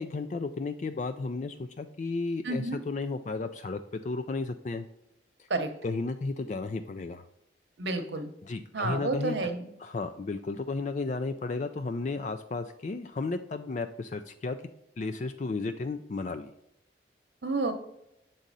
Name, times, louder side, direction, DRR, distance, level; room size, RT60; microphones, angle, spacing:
voice 1, 0.0-4.9 5.8-7.3 8.4-9.4 9.8-14.6 15.0-16.5, left 3 dB, 40° left, 8 dB, 0.3 m, -33 dB
voice 2, 2.4-2.8 5.5-5.7 7.8-8.3 8.7-9.7 17.4-17.7, right 2 dB, 75° right, 6 dB, 0.9 m, -30 dB
7.2 x 3.9 x 4.0 m, 0.83 s
head